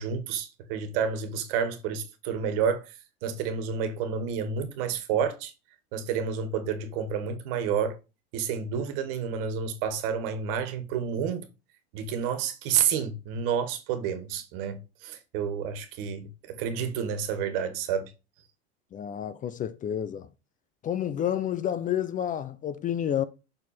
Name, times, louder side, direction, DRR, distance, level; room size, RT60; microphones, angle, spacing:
voice 1, 0.0-3.0 3.2-5.5 5.9-8.0 8.3-11.5 11.9-18.1, right 7 dB, 60° right, 1.7 m, -30 dB
voice 2, 18.9-20.3 20.8-23.2, left 10 dB, 25° left, 0.5 m, -30 dB
6.4 x 4.6 x 4.3 m
supercardioid pair, 115°, 31 cm